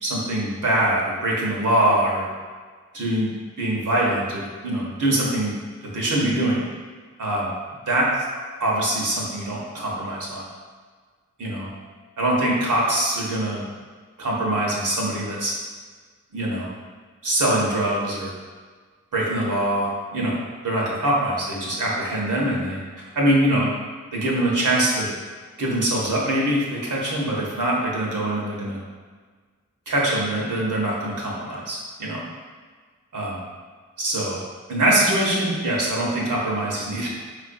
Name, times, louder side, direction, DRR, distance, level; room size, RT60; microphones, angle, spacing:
voice 1, 0.0-2.2 2.9-3.3 3.6-5.5 5.8-6.6 7.2-7.5 7.9-8.1 8.6-10.4 11.4-11.7 12.2-13.7 14.2-15.5 16.3-16.7 17.2-18.3 19.1-22.8 23.1-23.7 24.1-25.1 25.6-28.8 29.9-32.2 33.1-33.3 34.0-34.4 34.7-37.1, right 1 dB, 80° right, -4 dB, 0.9 m, -23 dB
4.4 x 2.5 x 2.5 m, 1.5 s
cardioid pair, 50°, 31 cm